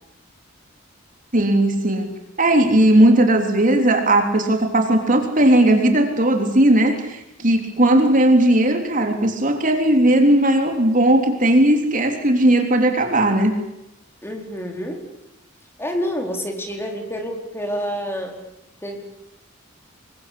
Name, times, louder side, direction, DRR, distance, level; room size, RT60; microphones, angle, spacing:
voice 1, 1.3-2.1 2.4-13.6, right 1 dB, 40° right, 5 dB, 3.5 m, -17 dB
voice 2, 14.2-15.1 15.8-18.4 18.8-19.0, equal, 10° left, 3 dB, 4.5 m, -28 dB
27.0 x 23.0 x 8.6 m, 0.84 s
head